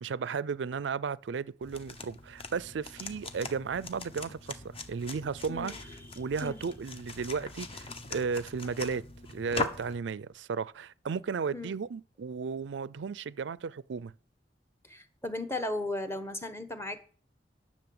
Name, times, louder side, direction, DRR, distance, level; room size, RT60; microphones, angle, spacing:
voice 1, 0.0-5.7 6.2-9.0 9.3-14.1, right 5 dB, 90° right, 0.4 m, -34 dB
sound 1, 1.6-10.0, left 3 dB, 35° left, 1.0 m, -41 dB
voice 2, 5.5-5.8 6.4-6.6 11.5-11.8 14.8-17.1, left 2 dB, 15° left, 1.1 m, -36 dB
10.5 x 6.3 x 7.8 m
head